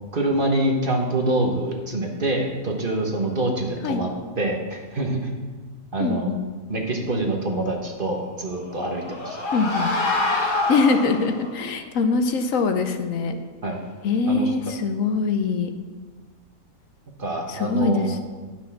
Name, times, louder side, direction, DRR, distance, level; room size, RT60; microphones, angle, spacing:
voice 1, 0.1-4.1 4.4-5.2 5.9-6.3 6.7-9.4 13.6-13.8 14.3-14.5 17.2-18.2, right 1 dB, 40° right, 1 dB, 1.3 m, -25 dB
voice 2, 6.0-6.5 9.5-9.9 10.7-13.4 14.0-15.7 17.5-18.2, left 4 dB, 70° left, 7 dB, 1.1 m, -23 dB
sound 1, 8.6-11.5, left 2 dB, 35° left, 1.4 m, -26 dB
10.5 x 6.0 x 5.9 m, 1.4 s
omnidirectional pair, 1.5 m